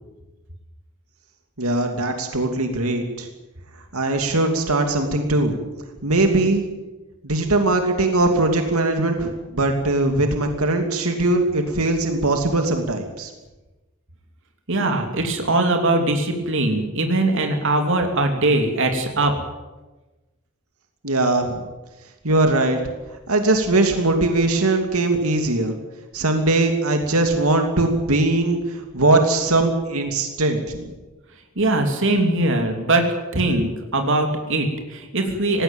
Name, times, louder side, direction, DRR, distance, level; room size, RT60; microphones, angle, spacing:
voice 1, 1.6-3.3 3.9-5.6 6.0-6.6 7.2-13.3 21.0-21.6 22.2-22.8 23.3-25.8 26.1-30.9, right 2 dB, 90° right, 4 dB, 2.8 m, -20 dB
voice 2, 14.7-19.3 31.6-33.0 33.3-35.6, right 2 dB, 60° right, 4 dB, 3.0 m, -21 dB
18.5 x 17.0 x 9.1 m, 1.1 s
head